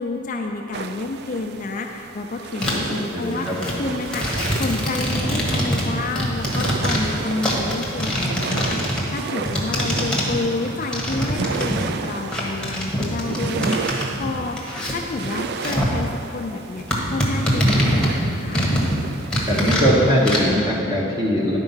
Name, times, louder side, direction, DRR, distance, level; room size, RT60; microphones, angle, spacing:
voice 1, 0.0-18.7, left 3 dB, 40° left, 2 dB, 0.4 m, -29 dB
sound 1, 0.7-19.8, right 5 dB, 50° right, 0.3 m, -33 dB
sound 2, 2.6-3.0 3.3-12.1 12.3-16.0 16.3-16.4 16.9-19.0 19.3-20.6, equal, 5° left, 1.2 m, -24 dB
voice 2, 3.1-3.5 19.5-21.6, equal, 20° right, -4 dB, 1.0 m, -20 dB
11.0 x 4.4 x 5.6 m, 2.9 s
head